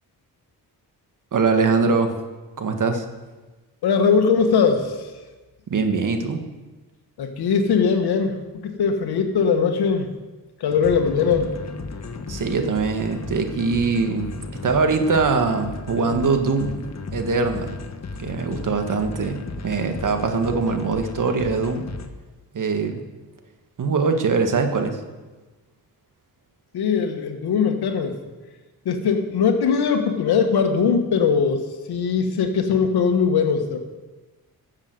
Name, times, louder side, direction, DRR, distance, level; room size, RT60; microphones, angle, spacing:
voice 1, 1.3-2.1 2.6-3.0 5.7-6.4 12.3-14.3 14.6-16.8 17.1-17.8 18.2-21.9 22.5-23.0 23.8-25.0, right 4 dB, 55° right, 6 dB, 1.7 m, -22 dB
voice 2, 3.8-5.1 7.2-10.1 10.6-11.5 26.7-28.2 28.8-31.6 31.9-33.8, left 6 dB, 85° left, 6 dB, 1.6 m, -20 dB
sound 1, 10.7-22.1, left 4 dB, 45° left, 1.3 m, -35 dB
13.0 x 7.5 x 7.9 m, 1.2 s
cardioid pair, 80°, 37 cm